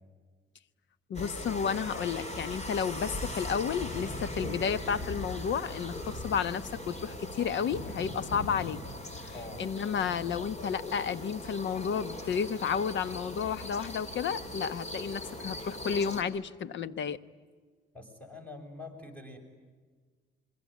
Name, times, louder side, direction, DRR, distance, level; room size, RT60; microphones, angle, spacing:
voice 1, 1.1-8.8 9.2-9.3 9.6-17.2, left 7 dB, 70° left, 15 dB, 1.3 m, -32 dB
sound 1, 1.1-16.2, left 1 dB, 35° left, 4.4 m, -40 dB
voice 2, 9.3-9.6 17.9-19.4, left 2 dB, 5° left, 2 dB, 7.9 m, -45 dB
27.0 x 23.0 x 9.5 m, 1.5 s
cardioid pair, 90°, 20 cm